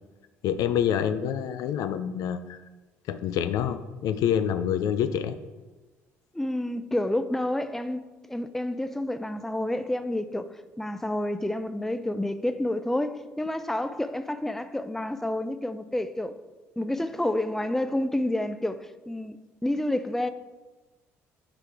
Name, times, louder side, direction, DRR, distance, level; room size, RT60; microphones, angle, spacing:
voice 1, 0.4-2.6 3.1-5.4, left 9 dB, 65° left, 0.4 m, -27 dB
voice 2, 6.3-8.0 8.3-16.3 16.8-19.4 19.6-20.3, left 1 dB, 5° left, 0.4 m, -29 dB
6.7 x 3.7 x 4.6 m
hypercardioid pair, 60°, 7 cm